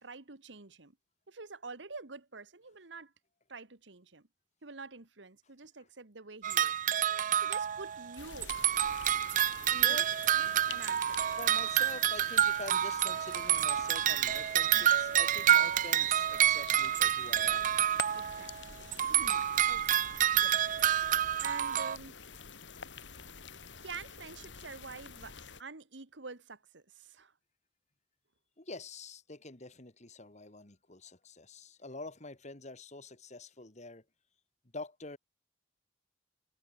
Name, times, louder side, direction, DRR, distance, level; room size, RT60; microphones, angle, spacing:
voice 1, 0.0-1.0 1.3-3.1 3.5-4.3 4.6-6.7 7.4-8.6 9.7-10.0 10.4-11.2 18.2-18.5 19.0-20.0 20.4-20.6 21.4-22.2 23.8-27.3, right 4 dB, 80° right, 1.7 m, -47 dB
sound 1, 6.4-8.2 8.4-18.6 18.9-22.0, right 11 dB, 45° right, 0.4 m, -28 dB
sound 2, 8.2-25.6, left 5 dB, 85° left, 3.1 m, -48 dB
voice 2, 11.4-17.7 28.6-34.0 34.7-35.2, left 3 dB, 40° left, 2.5 m, -46 dB
head